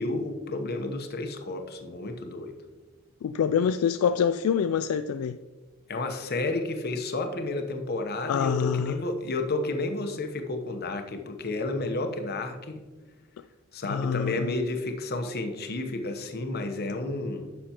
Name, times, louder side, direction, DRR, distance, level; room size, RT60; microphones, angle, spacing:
voice 1, 0.0-2.5 5.9-12.8 13.7-17.6, left 2 dB, 45° left, 0.9 m, -31 dB
voice 2, 3.2-5.4 8.3-9.0 13.9-14.5, left 7 dB, 75° left, 0.3 m, -26 dB
10.0 x 6.7 x 2.9 m
head